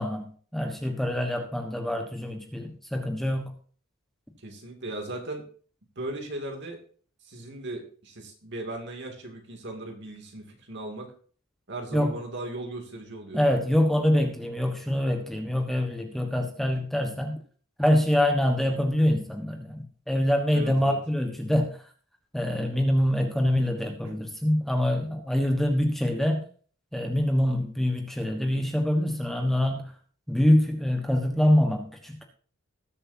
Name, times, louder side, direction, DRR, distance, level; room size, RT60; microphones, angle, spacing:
voice 1, 0.0-3.5 11.9-12.2 13.3-17.4 17.8-21.8 22.3-26.4 26.9-29.9 30.3-32.3, left 1 dB, ahead, 3 dB, 1.2 m, -25 dB
voice 2, 4.4-5.4 6.0-6.8 7.2-11.1 11.7-13.4 20.5-21.0 24.0-24.2, right 1 dB, 55° right, 2 dB, 2.5 m, -37 dB
19.5 x 7.6 x 2.7 m, 0.44 s
head